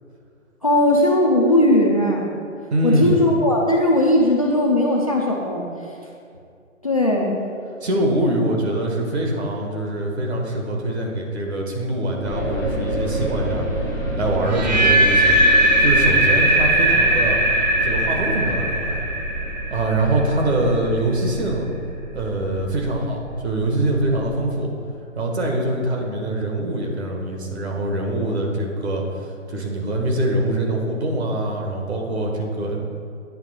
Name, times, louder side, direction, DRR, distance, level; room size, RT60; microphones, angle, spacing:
voice 1, 0.6-2.2 2.8-5.7 6.8-7.4, left 1 dB, 30° left, -1 dB, 0.4 m, -18 dB
voice 2, 2.7-3.2 7.8-13.6 14.2-15.4 15.8-17.4 17.8-19.0 19.7-21.7 22.1-24.7 25.1-32.8, right 1 dB, 55° right, 0 dB, 1.6 m, -23 dB
sound 1, 12.2-24.6, equal, 15° right, 0.7 m, -29 dB
sound 2, 14.5-20.5, right 1 dB, 30° right, 1.0 m, -19 dB
9.0 x 3.4 x 6.8 m, 2.3 s
hypercardioid pair, 160°, 40 cm